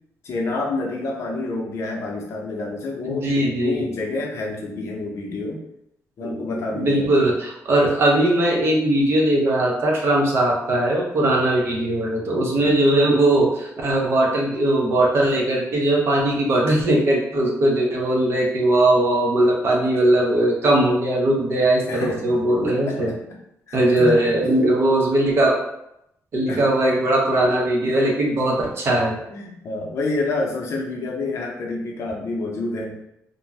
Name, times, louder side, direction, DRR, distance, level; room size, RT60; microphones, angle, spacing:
voice 1, 0.2-5.6 6.2-7.1 12.6-12.7 21.9-23.4 23.7-24.3 26.5-26.7 29.3-33.0, left 2 dB, 55° left, -1 dB, 0.6 m, -28 dB
voice 2, 3.0-3.8 6.2-23.1 23.7-25.6 26.3-29.2, right 1 dB, 45° right, -1 dB, 0.6 m, -19 dB
2.5 x 2.1 x 3.2 m, 0.80 s
cardioid pair, 160°, 6 cm